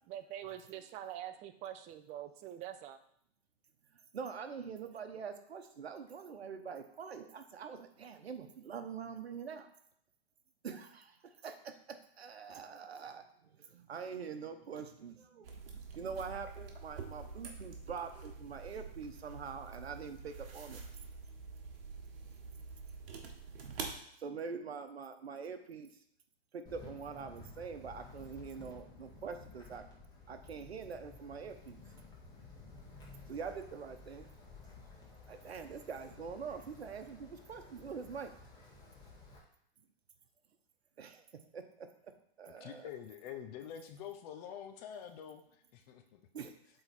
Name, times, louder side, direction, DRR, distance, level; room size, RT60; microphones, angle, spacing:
voice 1, 0.1-3.0, right 11 dB, 25° right, 10 dB, 0.5 m, -45 dB
voice 2, 4.1-9.7 10.6-20.8 23.6-23.8 24.2-25.9 26.5-29.8 30.3-31.8 33.3-34.3 35.3-38.3 41.0-41.2 41.5-41.9 42.4-42.9 46.3-46.5, right 6 dB, 85° right, 7 dB, 1.0 m, -44 dB
sound 1, 15.4-24.0, right 4 dB, 65° right, 1.4 m, -47 dB
Wind, 26.7-39.4, left 3 dB, 15° left, 1.9 m, -54 dB
voice 3, 42.6-46.2, left 9 dB, 40° left, 6 dB, 0.8 m, -47 dB
7.9 x 3.9 x 4.2 m, 0.69 s
hypercardioid pair, 125°, 31 cm